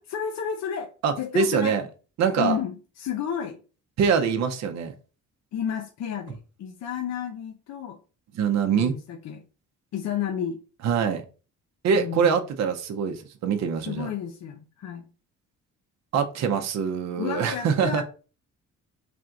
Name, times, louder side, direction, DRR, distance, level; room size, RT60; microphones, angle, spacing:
voice 1, 0.0-1.8 2.4-3.6 5.5-8.0 8.7-9.4 9.9-10.6 11.9-12.4 13.9-15.1 17.2-18.0, left 8 dB, 60° left, 0.6 m, -31 dB
voice 2, 1.0-1.8 2.2-2.6 4.0-4.9 8.4-8.9 10.8-11.2 11.8-14.1 16.1-18.0, right 6 dB, 60° right, 0.6 m, -24 dB
3.4 x 2.5 x 4.5 m
cardioid pair, 100°, 30 cm